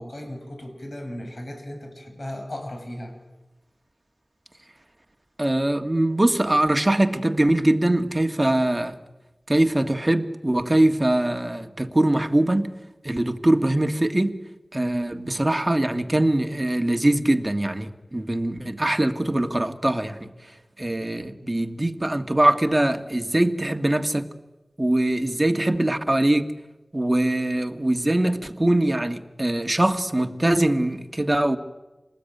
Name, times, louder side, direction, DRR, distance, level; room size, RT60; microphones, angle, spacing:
voice 1, 0.0-3.1, left 1 dB, 55° left, 7.2 m, -36 dB
voice 2, 5.4-9.0 9.5-12.7 13.0-14.4 14.7-20.3 20.8-24.3 24.8-26.5 26.9-31.6, right 1 dB, 25° right, 1.8 m, -22 dB
27.5 x 19.5 x 9.4 m
wide cardioid pair, 60°, 0 cm